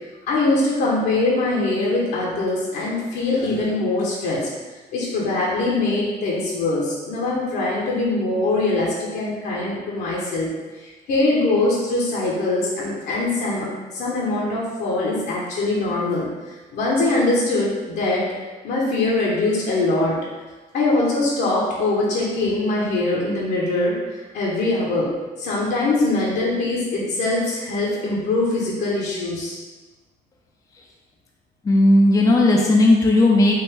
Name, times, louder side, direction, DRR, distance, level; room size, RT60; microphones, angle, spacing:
voice 1, 0.3-4.5 4.9-10.5 10.8-18.2 18.6-20.1 20.7-25.1 25.4-29.6, left 2 dB, 75° left, -5 dB, 1.2 m, -22 dB
voice 2, 31.6-33.5, left 1 dB, 20° left, -1 dB, 0.5 m, -15 dB
5.2 x 2.5 x 3.7 m, 1.2 s
cardioid pair, 110°, 17 cm